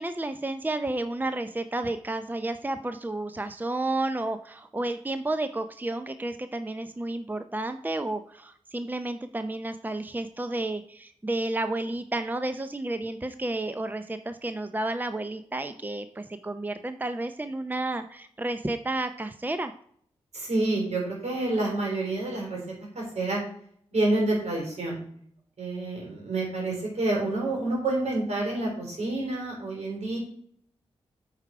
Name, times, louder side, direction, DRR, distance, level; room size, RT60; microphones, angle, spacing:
voice 1, 0.0-19.7, right 2 dB, 15° right, 9 dB, 0.6 m, -31 dB
voice 2, 20.3-22.6 23.0-23.4 23.9-25.0 25.6-30.2, right 2 dB, 75° right, -1 dB, 3.6 m, -28 dB
8.4 x 4.9 x 4.7 m, 0.62 s
cardioid pair, 45°, 11 cm